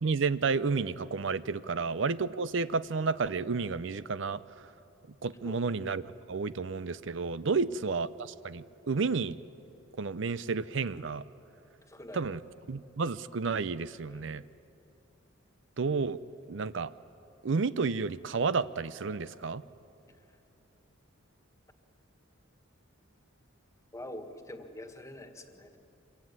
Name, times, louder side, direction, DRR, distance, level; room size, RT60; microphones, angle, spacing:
voice 1, 0.0-4.7 5.2-6.0 6.3-9.4 10.0-11.2 12.1-12.4 12.7-14.4 15.8-16.2 16.5-16.9 17.4-19.6, right 4 dB, 65° right, 15 dB, 0.5 m, -31 dB
voice 2, 11.9-12.2 14.0-14.4 23.9-25.8, left 1 dB, 15° left, 6 dB, 1.7 m, -45 dB
25.0 x 23.0 x 9.6 m, 2.8 s
head